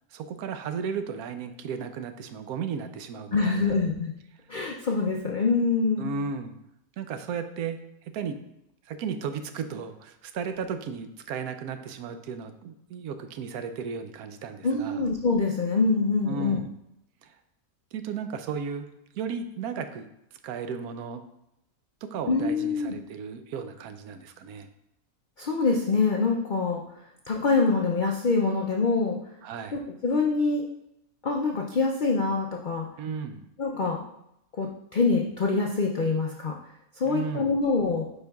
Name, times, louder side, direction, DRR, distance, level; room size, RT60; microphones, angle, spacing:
voice 1, 0.1-3.8 6.0-6.6 7.0-8.4 8.9-15.0 16.3-16.7 17.2-17.3 17.9-18.9 19.1-20.1 20.4-21.2 22.1-24.7 29.4-29.8 33.0-33.5 37.0-37.6, right 6 dB, 80° right, 8 dB, 1.1 m, -35 dB
voice 2, 3.3-4.1 4.5-6.1 14.6-16.6 22.3-22.9 25.4-26.8 27.3-29.2 29.7-30.7 31.2-32.9 33.6-34.0 34.5-36.5 37.0-38.0, left 4 dB, 70° left, 0 dB, 0.4 m, -25 dB
9.5 x 4.4 x 2.3 m, 0.81 s
omnidirectional pair, 1.6 m